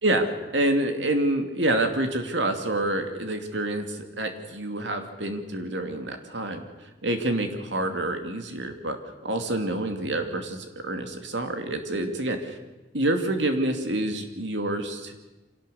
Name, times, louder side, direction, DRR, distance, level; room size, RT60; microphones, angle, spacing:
voice 1, 0.5-6.6 7.0-9.0 9.2-12.6 12.9-15.1, right 1 dB, 85° right, 5 dB, 2.5 m, -27 dB
25.5 x 18.0 x 7.0 m, 1.1 s
head